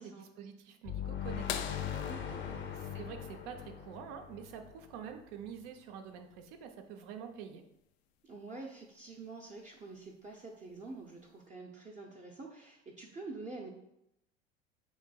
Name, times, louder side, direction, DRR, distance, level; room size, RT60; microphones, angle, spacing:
voice 1, 0.0-1.7 2.3-2.4 2.7-7.6, right 8 dB, 65° right, 6 dB, 0.7 m, -47 dB
sound 1, 0.8-5.4, left 9 dB, 35° left, 0.6 m, -40 dB
sound 2, 1.5-3.9 5.9-6.0 8.2-8.3 10.0-10.3 11.1-11.2, left 9 dB, 75° left, 0.5 m, -42 dB
voice 2, 2.0-2.8 8.2-13.7, right 3 dB, 25° right, -1 dB, 0.6 m, -47 dB
7.0 x 2.6 x 2.3 m, 0.82 s
hypercardioid pair, 75°, 32 cm